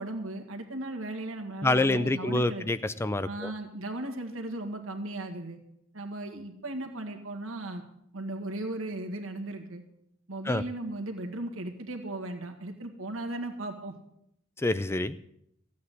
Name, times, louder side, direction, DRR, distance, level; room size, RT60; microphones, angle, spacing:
voice 1, 0.0-2.7 3.2-5.6 5.9-7.8 8.1-9.8 10.3-13.9, right 2 dB, 80° right, 4 dB, 1.8 m, -36 dB
voice 2, 1.6-3.5 10.5-10.6 14.6-15.2, left 2 dB, 10° left, 13 dB, 0.4 m, -27 dB
15.5 x 8.4 x 7.9 m, 0.76 s
head